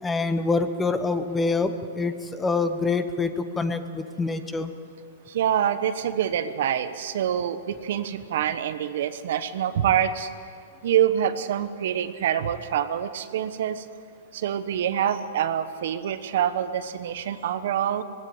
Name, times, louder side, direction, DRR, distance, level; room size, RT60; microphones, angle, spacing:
voice 1, 0.0-4.7, left 3 dB, 10° left, 10 dB, 1.0 m, -26 dB
voice 2, 5.3-10.3 10.8-13.8 14.3-18.0, right 10 dB, 65° right, 11 dB, 1.1 m, -26 dB
19.0 x 16.0 x 9.0 m, 2.3 s
hypercardioid pair, 145°, 0 cm